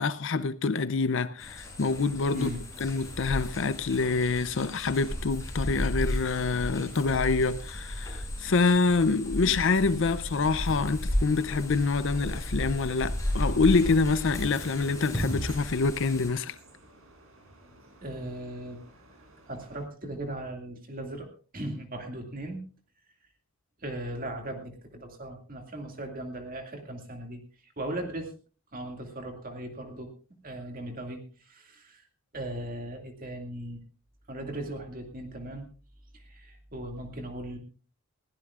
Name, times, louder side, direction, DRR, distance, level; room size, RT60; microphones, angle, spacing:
voice 1, 0.0-2.5 2.8-16.6, left 4 dB, 60° left, 0.5 m, -26 dB
sound 1, 1.4-16.3, equal, 15° left, 6.4 m, -34 dB
voice 2, 2.3-2.6 18.0-18.8 19.5-22.6 23.8-28.3 28.7-30.1 30.4-32.0 32.3-33.8 34.3-35.7 36.1-37.6, right 1 dB, 40° right, 2.2 m, -38 dB
sound 2, 14.4-19.9, right 2 dB, 80° right, 4.7 m, -55 dB
20.5 x 15.5 x 2.4 m
head